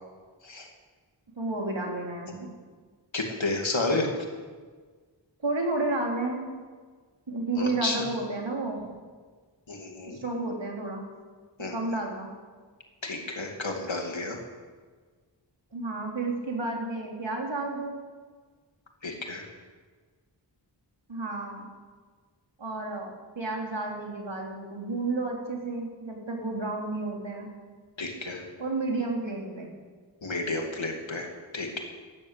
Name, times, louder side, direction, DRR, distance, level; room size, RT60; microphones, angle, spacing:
voice 1, 1.4-2.5 5.4-6.5 7.3-8.9 10.1-11.0 11.7-12.3 15.7-18.0 21.1-21.7 22.6-27.5 28.6-29.7, right 2 dB, 75° right, 0 dB, 3.3 m, -31 dB
voice 2, 3.1-4.1 7.5-8.0 9.7-10.2 11.6-12.0 13.0-14.4 19.0-19.5 28.0-28.4 30.2-31.8, left 2 dB, 85° left, 2 dB, 2.5 m, -31 dB
13.0 x 11.5 x 8.3 m, 1.5 s
wide cardioid pair, 55°, 45 cm